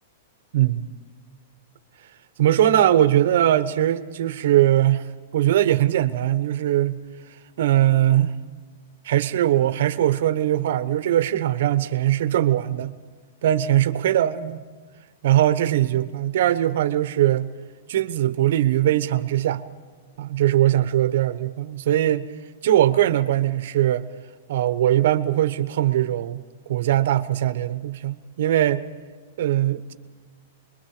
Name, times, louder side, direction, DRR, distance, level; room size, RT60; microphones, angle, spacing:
voice 1, 0.5-0.8 2.4-5.1 5.3-7.0 7.6-8.4 9.0-12.9 13.4-14.6 15.2-17.5 17.9-19.6 20.2-22.3 22.6-24.1 24.5-26.4 26.7-28.8 29.4-29.9, right 12 dB, 55° right, 1.1 m, -20 dB
25.0 x 22.5 x 5.0 m
supercardioid pair, 175°, 0 cm